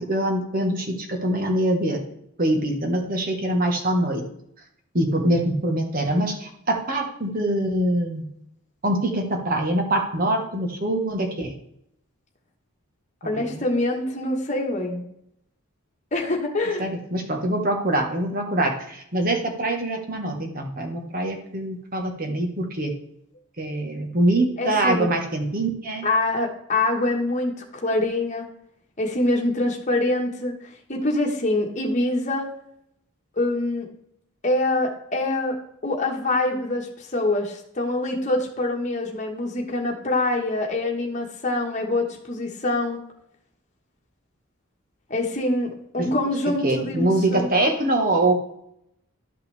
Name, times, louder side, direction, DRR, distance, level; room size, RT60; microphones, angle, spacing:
voice 1, 0.0-2.0 2.4-4.2 4.9-8.2 8.8-11.5 13.2-13.6 16.8-22.9 23.6-26.0 46.6-48.3, right 1 dB, 40° right, 3 dB, 1.3 m, -24 dB
voice 2, 13.2-15.0 16.1-16.9 24.6-25.1 26.0-28.5 29.0-32.5 33.4-33.9 34.4-43.0 45.1-47.5, left 2 dB, 35° left, 0 dB, 1.3 m, -25 dB
12.0 x 5.8 x 3.4 m, 0.74 s
head